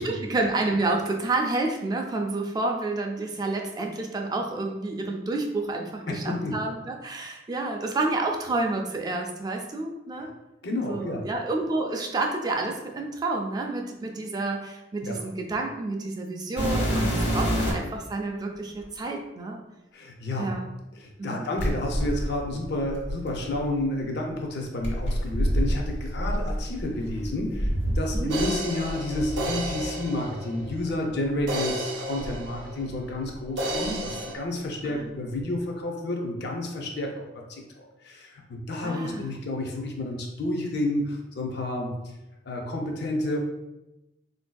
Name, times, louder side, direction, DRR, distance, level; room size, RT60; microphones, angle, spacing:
voice 1, 0.0-10.3 10.9-19.6 20.4-20.7 21.2-21.5 28.1-28.4 34.8-35.1 38.8-39.2, right 2 dB, 20° right, 2 dB, 0.3 m, -29 dB
voice 2, 6.1-6.5 10.2-10.3 10.6-11.3 15.0-15.3 19.9-20.5 21.0-37.1 37.5-42.0 42.5-43.4, left 1 dB, 60° left, 1 dB, 0.5 m, -30 dB
sound 1, 16.6-18.0 18.8-18.9 21.6-23.7 24.8-28.5 28.8-29.9 30.6-30.8 31.4-31.5 32.2-33.3 33.5-34.1 35.4-35.5, equal, 75° left, 1.2 m, -28 dB
sound 2, 28.3-30.9 31.5-33.2 33.6-34.3, right 1 dB, 80° right, 0.6 m, -33 dB
3.9 x 2.6 x 2.2 m, 0.96 s
head